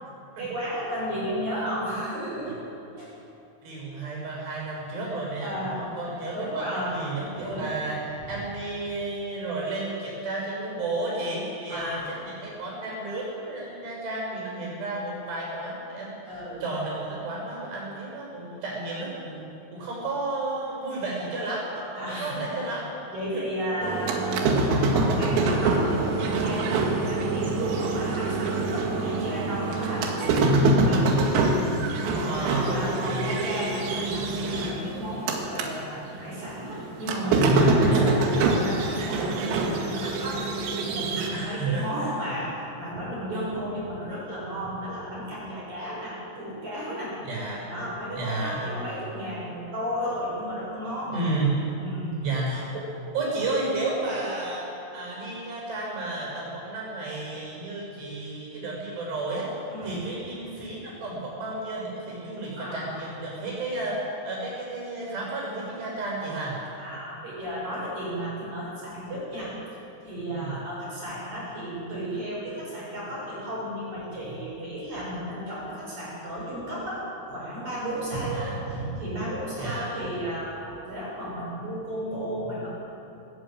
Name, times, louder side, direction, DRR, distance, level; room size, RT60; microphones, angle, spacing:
voice 1, 0.4-2.5 2.9-3.1 5.4-5.9 6.3-7.0 7.4-7.7 11.7-12.1 16.3-16.6 22.0-22.6 23.1-31.1 32.1-47.2 47.7-51.1 51.8-52.2 59.7-60.0 62.6-62.9 66.8-69.6 70.0-82.7, equal, 35° right, -6 dB, 7.5 m, -33 dB
voice 2, 3.6-22.9 23.3-23.4 24.6-24.7 32.2-33.4 37.9-38.2 41.3-42.1 47.3-47.7 48.2-48.7 51.1-51.6 52.2-59.5 59.8-66.6 70.2-70.6 78.3-78.6 79.6-80.0, right 2 dB, 55° right, -3 dB, 8.7 m, -32 dB
sound 1, 23.8-35.7 36.1-41.3, right 2 dB, 90° right, 4.7 m, -25 dB
20.5 x 15.5 x 9.1 m, 2.8 s
omnidirectional pair, 5.9 m